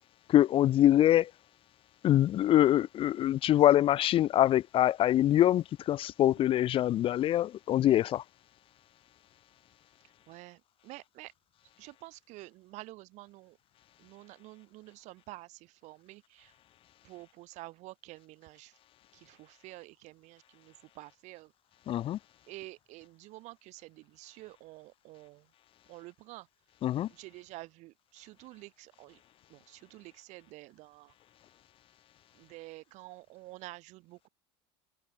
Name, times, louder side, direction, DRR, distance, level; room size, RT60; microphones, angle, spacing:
voice 1, 0.3-1.3 2.0-8.2 21.9-22.2 26.8-27.1, left 12 dB, 35° left, 1.7 m, -24 dB
voice 2, 10.3-11.3 11.8-13.6 14.0-16.5 17.0-18.8 19.1-21.5 22.5-25.5 25.9-26.5 27.1-29.2 29.5-31.1 32.3-34.3, right 20 dB, 50° right, 3.7 m, -49 dB
supercardioid pair, 135°, 15 cm